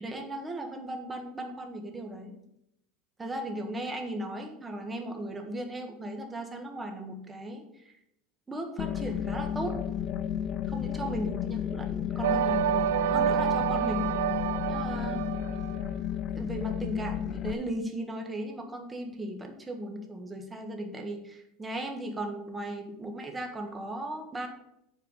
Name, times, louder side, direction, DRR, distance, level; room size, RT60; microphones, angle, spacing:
voice 1, 0.0-2.4 3.2-7.9 8.5-9.8 10.6-14.0 14.7-15.4 16.3-24.5, right 1 dB, 15° right, 3 dB, 1.5 m, -37 dB
sound 1, 8.8-17.5, left 9 dB, 40° left, 0.5 m, -32 dB
sound 2, 12.2-15.9, right 11 dB, 90° right, 0.3 m, -28 dB
8.0 x 4.7 x 6.7 m, 0.81 s
supercardioid pair, 135°, 0 cm